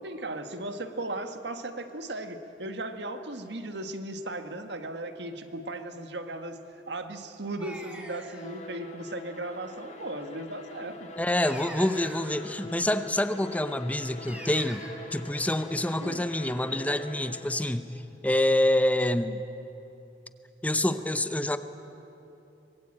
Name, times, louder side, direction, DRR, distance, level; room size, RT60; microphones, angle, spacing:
voice 1, 0.0-11.1 16.0-16.2, right 2 dB, 65° right, 7 dB, 1.6 m, -37 dB
sound 1, 7.6-8.5 11.4-12.7 14.3-14.9, right 1 dB, 10° right, 2.7 m, -43 dB
Bowed string instrument, 8.2-17.7, left 2 dB, 40° left, 2.1 m, -45 dB
voice 2, 11.2-14.8 15.1-17.9 18.2-19.4 20.6-21.6, left 1 dB, 10° left, 11 dB, 0.8 m, -26 dB
24.5 x 21.0 x 8.8 m, 2.9 s
head